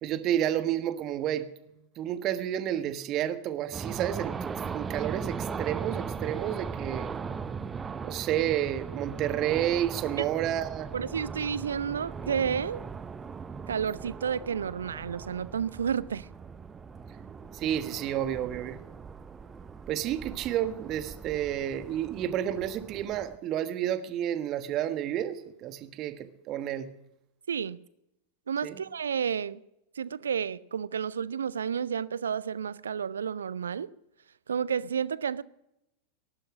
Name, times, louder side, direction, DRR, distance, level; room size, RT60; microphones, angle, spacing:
voice 1, 0.0-1.5 2.0-7.1 8.0-10.9 17.5-18.8 19.9-26.9 28.6-28.8, right 11 dB, 35° right, 1.3 m, -30 dB
sound 1, 3.7-23.4, right 5 dB, 20° right, 0.7 m, -39 dB
voice 2, 10.9-12.8 13.7-16.3 27.5-27.8 28.5-29.6 30.0-33.9 34.5-35.4, right 7 dB, 70° right, 0.5 m, -31 dB
19.0 x 11.5 x 6.2 m
figure-of-eight pair, 90°, 0 cm